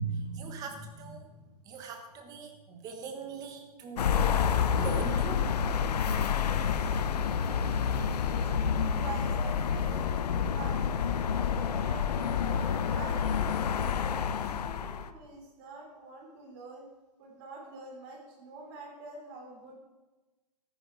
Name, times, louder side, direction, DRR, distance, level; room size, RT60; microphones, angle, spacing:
voice 1, 0.0-4.2 4.7-5.5, right 4 dB, 20° right, 5 dB, 1.6 m, -39 dB
sound 1, 4.0-15.1, left 7 dB, 85° left, 1.0 m, -28 dB
voice 2, 6.9-9.9 10.5-16.9 17.2-19.7, right 3 dB, 35° right, 0 dB, 4.4 m, -47 dB
14.0 x 10.0 x 5.0 m, 1.1 s
hypercardioid pair, 165°, 20 cm